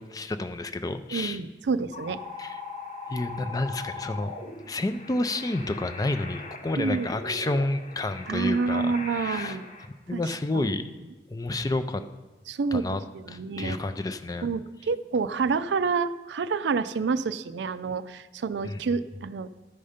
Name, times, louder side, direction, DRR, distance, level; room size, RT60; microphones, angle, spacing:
voice 1, 0.0-1.4 2.4-2.6 3.1-4.3 4.7-9.6 10.1-10.8 11.3-12.0 12.7-13.0 13.3-14.5 18.6-18.8, left 2 dB, 20° left, 9 dB, 0.4 m, -30 dB
voice 2, 1.1-2.2 6.8-7.1 8.3-9.7 10.1-10.2 10.5-10.7 12.5-13.8 14.4-19.5, right 4 dB, 80° right, 13 dB, 0.4 m, -28 dB
sound 1, 1.9-9.9, left 3 dB, 40° left, 0.9 m, -40 dB
12.5 x 5.5 x 5.0 m, 1.2 s
head